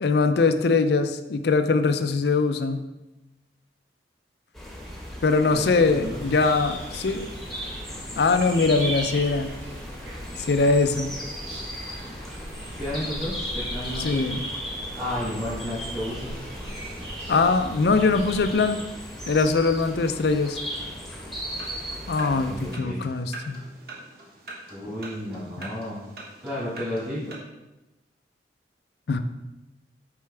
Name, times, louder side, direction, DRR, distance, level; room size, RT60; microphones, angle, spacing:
voice 1, 0.0-2.8 5.2-7.3 8.2-9.5 10.4-11.1 14.0-14.4 17.3-18.8 19.3-20.6 22.1-23.6 29.1-29.2, left 4 dB, 60° left, 9 dB, 0.4 m, -22 dB
sound 1, 4.5-22.8, equal, ahead, 1.0 m, -37 dB
voice 2, 5.4-6.3 12.8-14.3 15.0-16.4 22.1-23.0 24.7-26.0 26.4-27.4, equal, 20° right, -11 dB, 2.0 m, -32 dB
sound 2, 5.5-18.5, equal, 80° right, 1.7 m, -39 dB
sound 3, 21.5-27.3, right 3 dB, 55° right, 1.2 m, -44 dB
6.7 x 4.6 x 3.3 m, 1.0 s
head